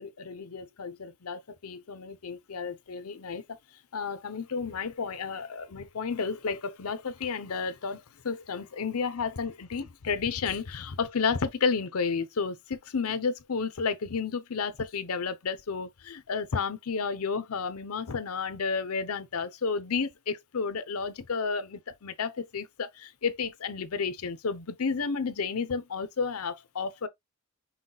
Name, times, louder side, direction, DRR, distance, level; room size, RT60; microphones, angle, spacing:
voice 1, 0.0-3.4 3.9-27.1, left 5 dB, 80° left, 0.7 m, -32 dB
5.8 x 2.3 x 3.8 m
head